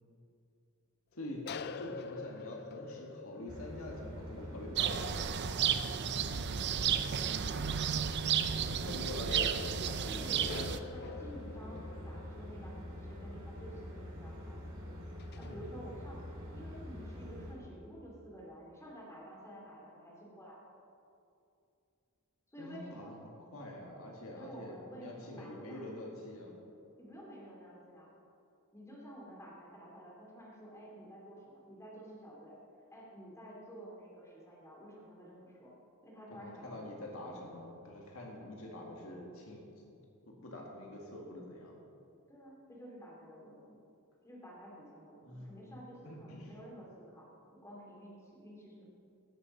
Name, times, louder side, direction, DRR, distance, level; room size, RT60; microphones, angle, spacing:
voice 1, 1.1-1.4 1.8-5.2 8.7-10.7 15.4-15.7 22.6-26.6 36.4-39.6 39.9-40.0 40.3-41.8 45.2-45.6 46.0-46.5, left 1 dB, 75° left, -1 dB, 2.1 m, -45 dB
sound 1, 1.3-6.2 6.5-6.6 6.8-6.9 7.9-8.2 8.9-14.1 14.7-14.8 15.2-15.9, left 5 dB, 50° left, 0.4 m, -47 dB
sound 2, 3.5-17.5, left 1 dB, 70° right, 3.8 m, -45 dB
sound 3, 4.8-10.8, right 8 dB, 50° right, 0.5 m, -33 dB
voice 2, 10.1-14.7 15.4-16.2 16.5-20.7 22.5-23.2 24.4-25.9 27.0-28.1 28.7-32.6 32.9-35.7 36.0-37.6 38.3-38.5 42.3-43.8 44.2-47.3 47.5-48.8, equal, 15° left, -4 dB, 2.8 m, -51 dB
17.5 x 6.8 x 5.9 m, 2.6 s
head